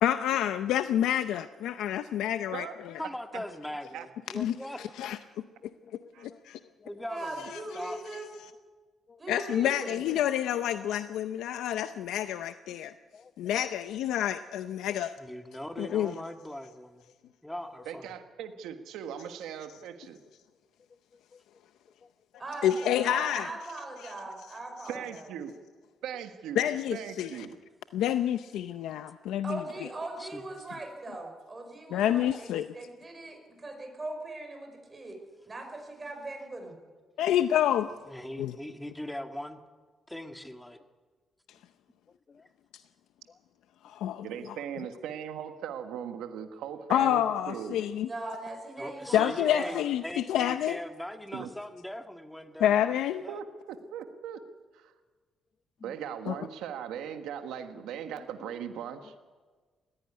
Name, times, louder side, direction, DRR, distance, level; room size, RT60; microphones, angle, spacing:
voice 1, 0.0-2.9 4.3-5.2 6.2-6.6 7.5-7.6 9.3-12.9 13.4-15.1 15.8-16.1 22.6-23.5 24.0-24.1 26.6-27.3 27.9-29.6 31.9-32.7 37.2-37.9 38.4-38.6 43.8-44.3 46.9-48.1 49.1-50.8 52.6-53.2 56.3-56.4, left 11 dB, 85° left, 11 dB, 0.6 m, -28 dB
voice 2, 3.0-4.8 6.8-7.4 7.7-8.0 15.2-17.0 17.4-18.0 30.2-30.4 38.1-39.6 40.1-40.8 48.8-53.4, left 1 dB, 5° left, 6 dB, 1.8 m, -40 dB
voice 3, 5.8-6.4 6.8-7.1 9.1-9.2 12.7-12.8 13.1-13.3 21.3-21.4 22.0-22.1 42.1-42.5 43.3-43.4 55.8-55.9, left 5 dB, 40° left, 14 dB, 0.8 m, -55 dB
voice 4, 7.1-8.3 9.2-10.0 22.4-25.3 29.4-36.8 48.0-49.8, right 2 dB, 25° right, 3 dB, 5.8 m, -40 dB
voice 5, 17.8-20.2 24.9-25.6 26.0-27.6 44.2-47.8 51.3-51.5 53.3-54.4 54.7-54.9 55.8-59.1, right 8 dB, 90° right, 7 dB, 1.3 m, -39 dB
20.0 x 15.5 x 9.7 m, 1.4 s
cardioid pair, 90°, 0 cm